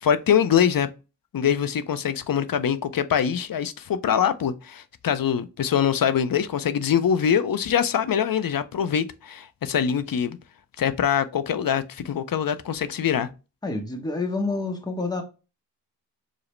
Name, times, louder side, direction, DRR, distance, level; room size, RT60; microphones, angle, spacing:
voice 1, 0.0-0.9 1.3-10.4 10.8-13.3, left 8 dB, 55° left, 0.5 m, -23 dB
voice 2, 13.6-15.2, left 3 dB, 10° left, 0.8 m, -28 dB
4.8 x 2.0 x 3.1 m
wide cardioid pair, 70°, 43 cm